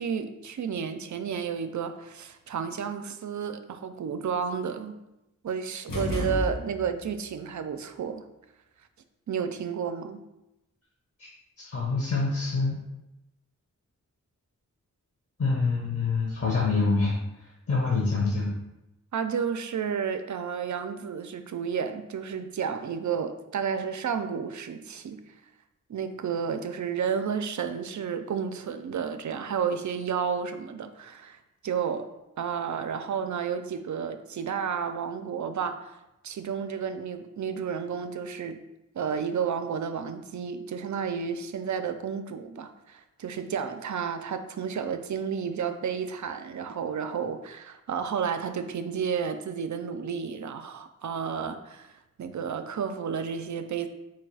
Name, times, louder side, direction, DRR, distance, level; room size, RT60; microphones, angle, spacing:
voice 1, 0.0-5.0 5.4-8.2 9.3-10.2 19.1-25.2 25.9-32.1 32.4-35.9 36.2-38.6 38.9-51.9 52.2-53.9, right 7 dB, 60° right, 8 dB, 0.4 m, -31 dB
sound 1, 5.9-7.1, equal, 85° left, 1.0 m, -31 dB
voice 2, 11.6-12.8 15.4-18.6, left 4 dB, 45° left, -5 dB, 1.0 m, -26 dB
4.5 x 2.3 x 4.7 m, 0.91 s
wide cardioid pair, 60°, 33 cm